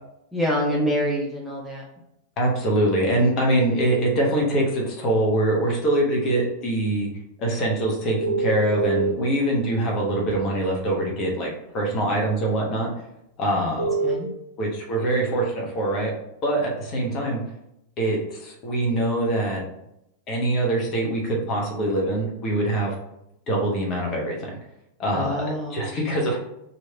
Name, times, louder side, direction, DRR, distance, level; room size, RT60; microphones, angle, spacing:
voice 1, 0.3-1.8 13.5-14.3 25.1-26.4, equal, ahead, -5 dB, 0.7 m, -27 dB
voice 2, 2.4-7.1 7.4-12.9 13.4-13.9 14.6-16.1 16.4-17.4 18.0-19.6 20.3-22.9 23.5-24.5 25.0-26.4, right 1 dB, 35° left, -1 dB, 1.0 m, -24 dB
sound 1, 8.2-9.1 10.3-10.4 13.8-14.1, right 3 dB, 70° right, 0.6 m, -24 dB
3.1 x 2.6 x 3.3 m, 0.82 s
figure-of-eight pair, 90°, 0 cm